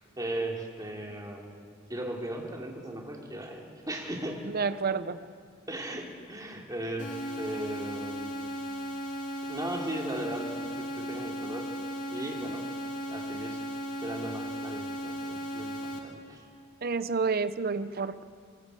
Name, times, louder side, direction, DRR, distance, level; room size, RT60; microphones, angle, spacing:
voice 1, 0.2-1.6 1.9-4.4 5.7-8.4 9.5-11.7 12.1-12.7 13.1-13.6 14.0-16.4, right 1 dB, 20° right, 0 dB, 3.1 m, -37 dB
voice 2, 4.5-5.2 16.8-18.2, right 4 dB, 50° right, 13 dB, 0.8 m, -29 dB
sound 1, 7.0-16.0, equal, 40° left, 3.0 m, -36 dB
23.0 x 18.0 x 8.3 m, 2.4 s
head